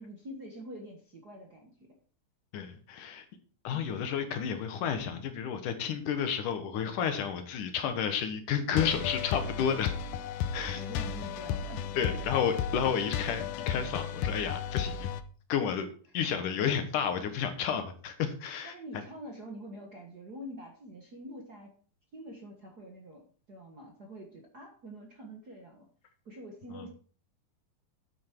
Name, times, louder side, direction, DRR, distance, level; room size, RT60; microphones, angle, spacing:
voice 1, 0.0-1.9 3.7-3.8 10.7-12.1 18.6-21.7 22.1-23.2 23.5-25.9 26.2-26.9, equal, 65° right, 1 dB, 0.9 m, -46 dB
voice 2, 2.5-3.3 3.6-9.9 10.5-10.8 11.9-15.1 15.5-15.9 16.1-19.0 26.7-26.9, left 7 dB, 65° left, 7 dB, 2.5 m, -31 dB
sound 1, 8.8-15.2, left 8 dB, 90° left, 1.8 m, -34 dB
10.5 x 8.3 x 4.5 m, 0.42 s
omnidirectional pair, 4.4 m